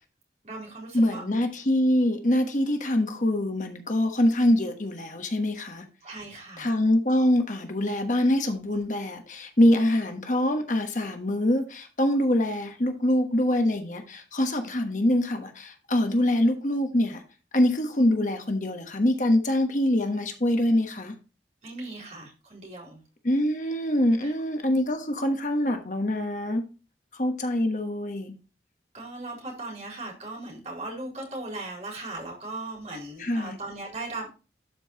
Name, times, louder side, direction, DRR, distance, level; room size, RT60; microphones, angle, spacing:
voice 1, 0.4-1.2 6.0-6.7 21.6-23.0 24.2-24.3 28.9-34.3, right 2 dB, 40° right, -2 dB, 4.2 m, -38 dB
voice 2, 0.9-5.8 6.6-17.2 17.5-21.1 23.2-26.6 27.1-28.3 33.2-33.6, left 1 dB, 45° left, 5 dB, 1.2 m, -24 dB
12.0 x 5.3 x 3.0 m, 0.32 s
head